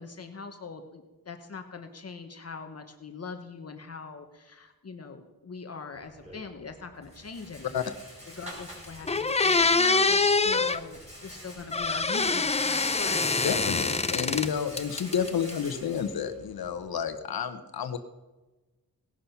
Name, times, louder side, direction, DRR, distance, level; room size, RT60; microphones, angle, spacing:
voice 1, 0.0-7.9 8.3-13.2, left 4 dB, 45° left, 6 dB, 1.2 m, -42 dB
Rattle, 5.9-17.0, equal, 20° right, 5.9 m, -48 dB
sound 1, 8.6-8.7 9.1-10.8 11.7-14.5 14.8-15.5, left 3 dB, 20° left, 0.6 m, -25 dB
voice 2, 13.4-18.0, left 7 dB, 80° left, 9 dB, 1.0 m, -30 dB
18.0 x 11.5 x 5.8 m, 1.2 s
wide cardioid pair, 145°, 36 cm